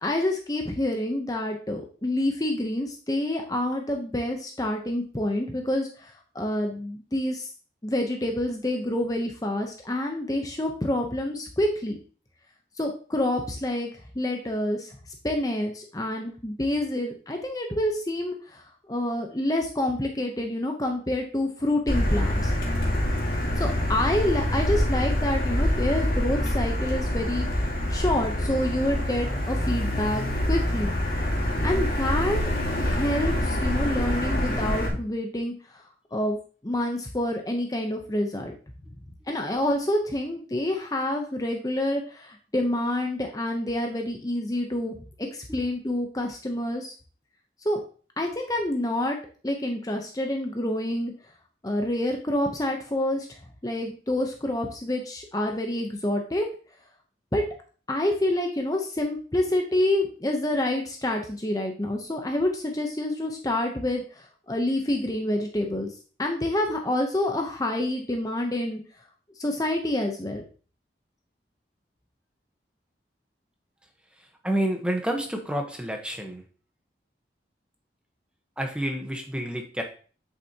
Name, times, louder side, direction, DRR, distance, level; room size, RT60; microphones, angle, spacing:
voice 1, 0.0-7.5 7.8-12.0 12.8-13.9 14.1-22.5 23.6-30.9 31.6-32.4 32.8-35.8 36.1-36.4 36.6-38.6 39.3-46.9 47.6-47.8 48.2-49.2 49.4-51.1 51.6-53.3 53.6-56.5 57.3-57.4 57.9-65.9 66.2-68.8 69.4-70.4, left 1 dB, 20° left, 3 dB, 0.8 m, -27 dB
Motor vehicle (road), 21.9-34.9, left 1 dB, 55° left, 1.9 m, -26 dB
voice 2, 74.4-76.4 78.6-79.8, right 1 dB, 5° right, 3 dB, 1.1 m, -29 dB
8.2 x 7.0 x 2.9 m, 0.39 s
head